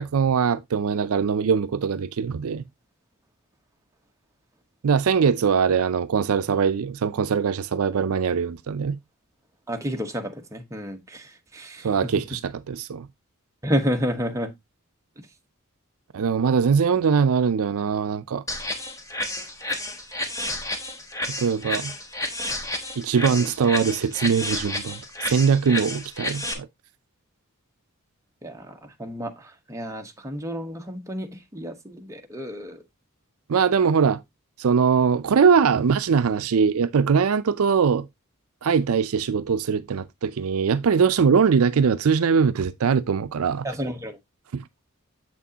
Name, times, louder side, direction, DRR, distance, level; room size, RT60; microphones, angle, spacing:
voice 1, 0.0-2.6 4.8-9.0 11.8-13.1 16.1-18.4 21.4-21.9 23.0-26.7 33.5-34.2 34.6-38.1 38.6-43.7 44.5-44.6, right 6 dB, 70° right, 0.4 m, -22 dB
voice 2, 9.7-11.9 13.6-14.5 23.3-23.7 28.4-32.8 43.6-44.2, equal, 15° right, 1.0 m, -30 dB
sound 1, 18.5-26.5, left 1 dB, 15° left, 1.1 m, -31 dB
7.4 x 6.2 x 2.8 m
head